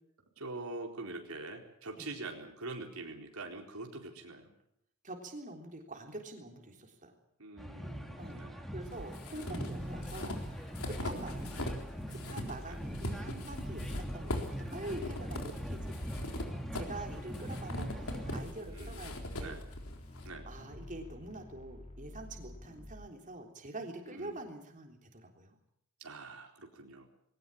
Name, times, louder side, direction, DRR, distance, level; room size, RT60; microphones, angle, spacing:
voice 1, 0.4-4.5 7.4-8.7 9.8-10.1 11.0-11.2 12.7-12.8 18.7-19.6 20.2-20.5 24.1-24.4 26.0-27.1, right 2 dB, 90° right, 2 dB, 4.2 m, -45 dB
voice 2, 5.0-7.1 8.2-16.2 16.7-19.6 20.5-25.6, right 2 dB, 35° right, 2 dB, 3.5 m, -46 dB
sound 1, 7.6-18.4, equal, ahead, 2.5 m, -42 dB
sound 2, 8.8-11.8 12.1-20.3, left 1 dB, 75° left, 3.9 m, -41 dB
sound 3, 9.8-23.1, left 1 dB, 30° left, 2.9 m, -49 dB
21.5 x 18.5 x 8.8 m, 0.73 s
head